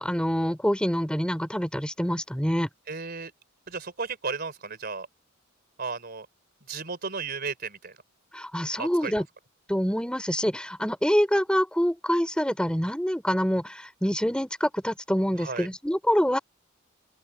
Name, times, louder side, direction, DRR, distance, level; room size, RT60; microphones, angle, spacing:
voice 1, 0.0-2.7 8.3-9.2 9.7-16.4, equal, 5° left, 4.0 m, -26 dB
voice 2, 2.9-3.3 3.7-5.1 5.8-6.3 6.7-8.0 8.8-9.2 15.4-15.7, right 4 dB, 45° right, 3.6 m, -34 dB
open air
head